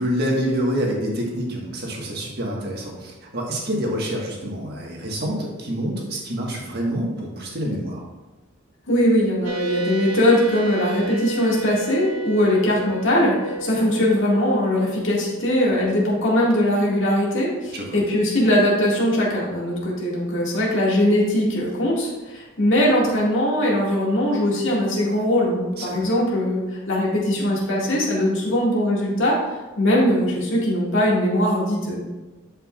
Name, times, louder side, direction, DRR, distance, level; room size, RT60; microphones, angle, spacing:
voice 1, 0.0-8.0 17.7-18.0 25.8-26.1, equal, 50° right, -2 dB, 1.6 m, -27 dB
voice 2, 8.9-32.0, left 1 dB, 60° left, -5 dB, 2.1 m, -21 dB
sound 1, 9.4-17.5, right 2 dB, 80° right, 0.7 m, -33 dB
11.0 x 5.5 x 2.5 m, 1.1 s
head